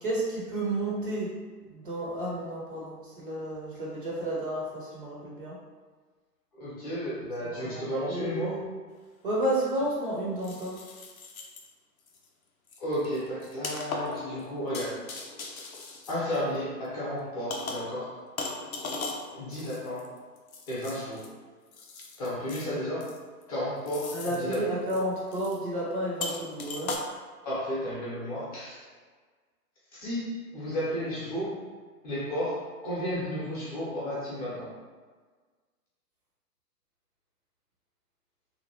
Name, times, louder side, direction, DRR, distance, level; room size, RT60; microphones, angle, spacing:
voice 1, 0.0-1.3 1.6-5.6 7.5-7.8 8.1-8.7 9.2-10.8 24.1-26.9, right 1 dB, 35° right, -6 dB, 0.6 m, -31 dB
voice 2, 6.5-8.5 12.8-15.0 16.1-18.2 19.3-20.2 20.7-21.3 22.2-23.1 23.5-24.6 27.4-28.8 29.9-31.6 32.0-34.7, equal, 25° left, -8 dB, 0.8 m, -33 dB
sound 1, 8.9-9.0 10.4-11.7 12.1-12.3 12.7-16.8 17.5-18.0 18.4-21.3 21.7-22.7 23.0-23.4 23.9-24.6 24.9-25.0 25.3-25.6 26.2-27.0, left 3 dB, 60° left, 0.6 m, -38 dB
2.8 x 2.4 x 2.8 m, 1.5 s
figure-of-eight pair, 125°, 48 cm